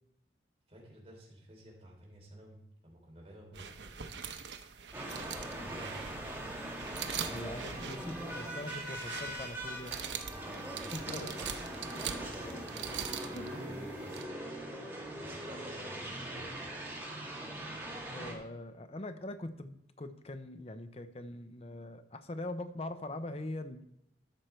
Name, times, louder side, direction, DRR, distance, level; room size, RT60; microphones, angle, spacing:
voice 1, 0.7-4.2 5.2-6.5 11.0-12.7 13.3-16.9, right 1 dB, 35° right, -2 dB, 3.3 m, -51 dB
sound 1, 3.5-14.2, right 7 dB, 85° right, 0.9 m, -43 dB
sound 2, 4.9-18.3, right 1 dB, 10° right, 1.8 m, -41 dB
voice 2, 7.3-9.9 10.9-11.3 13.3-13.4 18.1-23.8, left 1 dB, 35° left, 9 dB, 0.7 m, -42 dB
13.0 x 6.0 x 4.4 m, 0.81 s
head